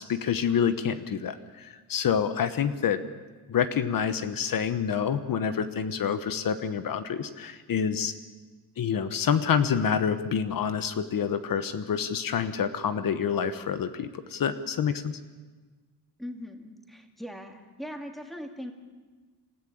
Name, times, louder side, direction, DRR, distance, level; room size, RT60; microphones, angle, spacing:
voice 1, 0.0-3.0 3.5-8.1 8.8-15.2, left 7 dB, 55° left, 11 dB, 1.1 m, -27 dB
voice 2, 16.2-18.7, equal, ahead, 4 dB, 2.3 m, -40 dB
27.0 x 15.0 x 8.7 m, 1.4 s
wide cardioid pair, 150°, 39 cm